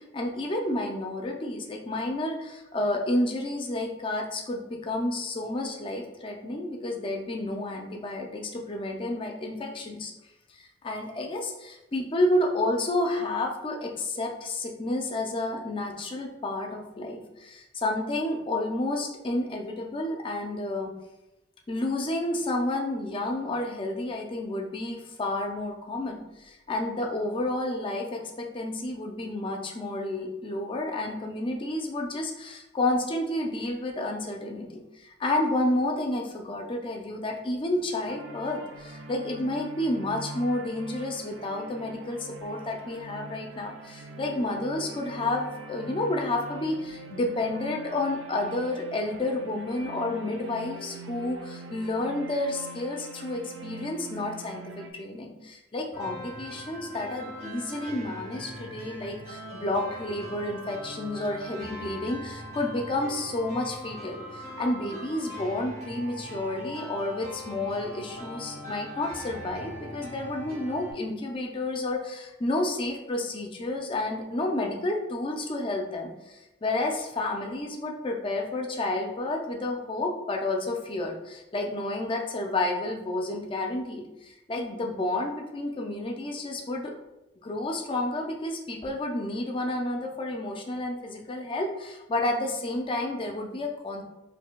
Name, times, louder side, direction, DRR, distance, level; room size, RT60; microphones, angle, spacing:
voice 1, 0.1-10.1 10.5-20.9 21.7-86.9 87.4-94.0, left 2 dB, 25° left, 2 dB, 0.4 m, -30 dB
sound 1, 38.1-54.9, right 2 dB, 75° right, 0.4 m, -43 dB
sound 2, 55.9-70.9, equal, 35° right, 0.8 m, -41 dB
4.4 x 2.6 x 2.2 m, 0.96 s
head